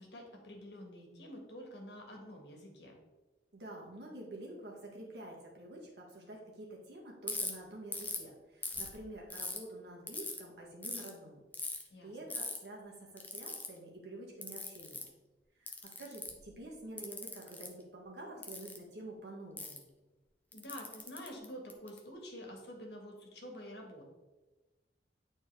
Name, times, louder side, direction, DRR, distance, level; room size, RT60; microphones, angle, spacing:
voice 1, 0.0-2.9 11.9-12.4 20.5-24.0, equal, 70° left, 1 dB, 1.6 m, -48 dB
voice 2, 3.5-11.4 12.0-15.0 15.6-19.9, right 1 dB, 70° right, -2 dB, 1.8 m, -48 dB
Ratchet pawl, 7.3-7.5 7.9-8.2 8.6-9.6 10.1-10.4 10.8-11.1 11.5-11.8 12.3-12.6 13.2-13.7 14.4-15.1 15.7-16.4 17.0-17.7 18.4-18.8 19.6-19.8 20.5-22.0, left 3 dB, 10° left, 0.7 m, -40 dB
9.5 x 4.3 x 3.4 m, 1.1 s
head